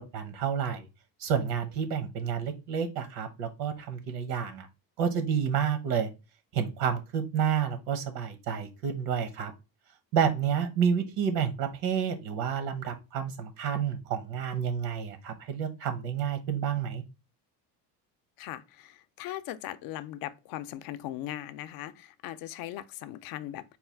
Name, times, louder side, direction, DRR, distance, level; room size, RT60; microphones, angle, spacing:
voice 1, 0.1-0.9 1.2-4.7 5.0-6.1 6.5-9.5 10.1-17.0, right 7 dB, 80° right, 0.9 m, -29 dB
voice 2, 18.4-23.6, left 13 dB, 55° left, 0.5 m, -39 dB
4.2 x 2.3 x 4.3 m
cardioid pair, 160°, 42 cm